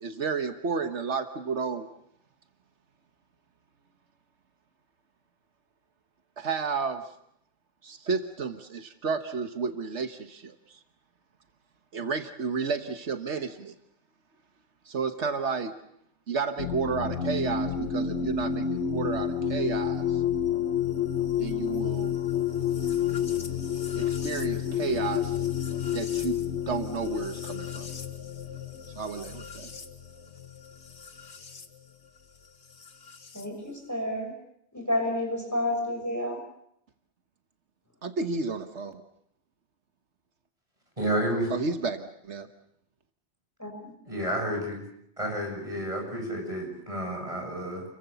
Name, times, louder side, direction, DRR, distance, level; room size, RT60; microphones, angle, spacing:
voice 1, 0.0-1.9 6.4-7.0 7.8-10.8 11.9-13.7 14.9-15.7 16.3-20.2 21.4-22.1 24.0-25.4 25.9-26.4 26.7-27.9 28.9-29.7 38.0-39.0 41.5-42.5, right 5 dB, 80° right, 7 dB, 1.6 m, -32 dB
sound 1, 16.6-31.7 32.8-33.4, left 8 dB, 70° left, 1.8 m, -30 dB
voice 2, 33.9-34.3 34.7-36.4 43.6-43.7, left 1 dB, 15° left, 1 dB, 6.5 m, -29 dB
voice 3, 41.0-41.5 44.1-44.8 45.2-47.8, right 1 dB, 30° right, 1 dB, 7.8 m, -30 dB
30.0 x 23.0 x 7.0 m, 0.72 s
omnidirectional pair, 1.2 m